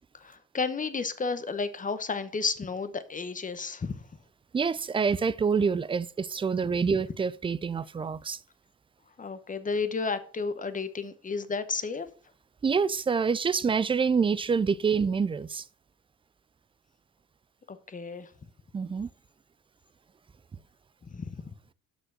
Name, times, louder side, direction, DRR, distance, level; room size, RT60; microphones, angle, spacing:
voice 1, 0.2-4.0 9.2-12.1 17.7-18.3 21.1-21.4, left 4 dB, 25° left, 0.9 m, -32 dB
voice 2, 4.5-8.4 12.6-15.6 18.7-19.1, right 5 dB, 20° right, 0.3 m, -26 dB
6.2 x 5.2 x 5.9 m
cardioid pair, 90°, 30 cm